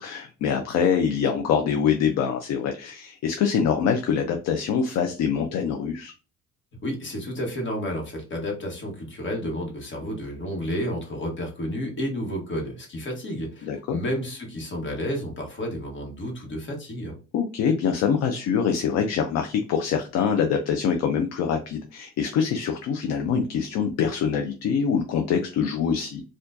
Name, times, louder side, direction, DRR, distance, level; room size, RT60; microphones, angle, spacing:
voice 1, 0.0-6.1 13.6-14.0 17.3-26.2, left 7 dB, 60° left, 5 dB, 0.5 m, -24 dB
voice 2, 6.8-17.1, equal, 40° left, 1 dB, 1.3 m, -31 dB
4.4 x 2.5 x 2.6 m, 0.34 s
cardioid pair, 130°, 30 cm